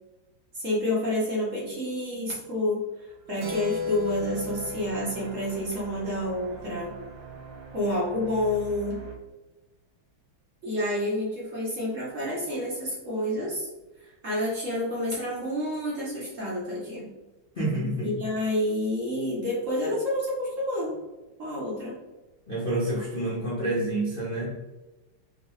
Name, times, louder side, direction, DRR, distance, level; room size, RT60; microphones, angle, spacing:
voice 1, 0.5-6.9 7.7-9.0 10.6-13.7 14.0-17.1 18.0-21.0 21.4-22.0, left 1 dB, 45° right, -6 dB, 1.2 m, -29 dB
sound 1, 3.0-9.2, right 6 dB, 90° right, 1.7 m, -45 dB
Keyboard (musical), 3.4-7.5, left 4 dB, 70° right, 1.0 m, -37 dB
voice 2, 17.5-18.2 22.5-24.5, right 1 dB, 45° left, -8 dB, 0.7 m, -28 dB
5.3 x 2.4 x 3.3 m, 1.1 s
omnidirectional pair, 2.2 m